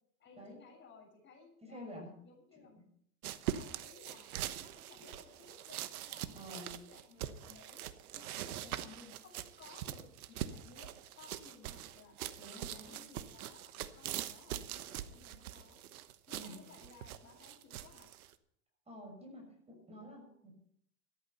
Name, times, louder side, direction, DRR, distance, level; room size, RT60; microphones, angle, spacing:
voice 1, 0.2-2.8 3.5-4.3 4.6-7.8 8.1-12.2 12.6-15.8 16.3-18.1 20.2-20.3, left 5 dB, 25° left, -2 dB, 7.3 m, -58 dB
voice 2, 1.6-2.1 2.8-2.9 6.3-6.7 12.4-13.0 16.3-16.6 18.9-20.5, equal, 15° right, 2 dB, 6.7 m, -49 dB
sound 1, 3.2-18.3, right 12 dB, 90° right, 1.2 m, -43 dB
14.0 x 13.0 x 5.7 m, 0.69 s
supercardioid pair, 125°, 42 cm